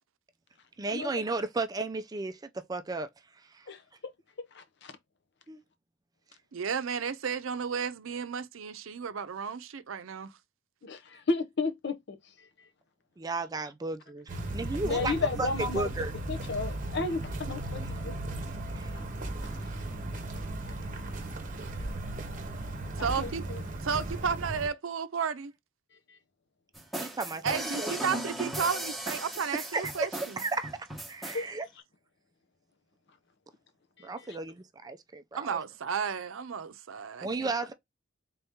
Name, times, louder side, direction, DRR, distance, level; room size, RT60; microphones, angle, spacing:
voice 1, 0.8-2.4 2.7-3.1 3.5-3.6 5.5-5.6 13.2-15.1 15.4-16.1 17.8-17.9 18.7-18.9 27.0-27.5 27.8-27.9 29.5-30.1 30.4-30.7 31.1-31.7 34.0-35.6 37.2-37.7, right 3 dB, 20° right, 0.4 m, -34 dB
voice 2, 3.7-4.1 4.4-4.9 10.8-12.7 14.8-15.9 16.3-18.2 18.9-19.0 19.6-19.7 23.0-23.6 26.1-26.2 31.3-31.5 34.0-34.4, left 3 dB, 60° left, 0.7 m, -34 dB
voice 3, 6.5-10.3 23.0-23.5 23.8-25.5 27.4-30.4 35.3-37.5, right 6 dB, 80° right, 0.6 m, -33 dB
sound 1, 14.3-24.7, right 1 dB, 40° right, 0.9 m, -36 dB
sound 2, 26.7-31.4, right 1 dB, ahead, 1.0 m, -37 dB
3.8 x 2.8 x 3.5 m
head